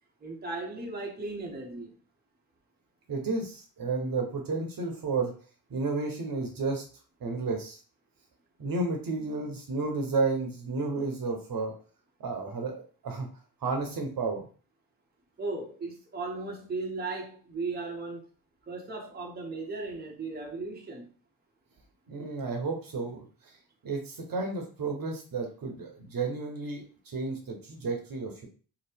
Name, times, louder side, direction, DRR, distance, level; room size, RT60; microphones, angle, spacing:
voice 1, 0.2-1.9 15.4-18.2 18.7-21.1, right 3 dB, 20° right, 0.8 m, -36 dB
voice 2, 3.1-5.3 5.7-6.8 7.2-7.8 8.6-11.7 12.2-12.7 13.0-13.3 13.6-14.5 22.1-23.2 23.8-28.5, right 3 dB, 50° right, 1.0 m, -32 dB
2.8 x 2.0 x 3.4 m
hypercardioid pair, 40°, 45 cm